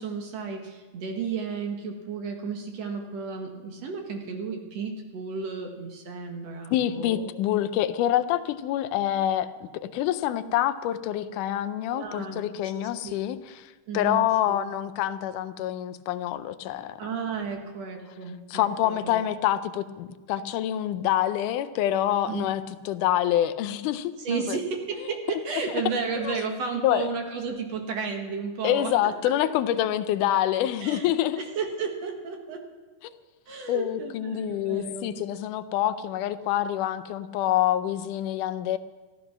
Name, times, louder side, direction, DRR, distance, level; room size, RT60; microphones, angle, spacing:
voice 1, 0.0-7.2 11.9-12.4 12.7-13.1 13.9-14.6 17.0-19.2 22.3-22.5 24.2-28.9 30.8-32.6 33.5-35.2, right 5 dB, 60° right, 3 dB, 2.5 m, -33 dB
voice 2, 6.7-17.0 18.5-24.6 25.3-25.4 26.2-26.4 26.8-27.1 28.6-31.4 33.7-38.8, left 12 dB, 80° left, 12 dB, 2.1 m, -26 dB
14.5 x 13.5 x 6.0 m, 1.3 s
omnidirectional pair, 3.6 m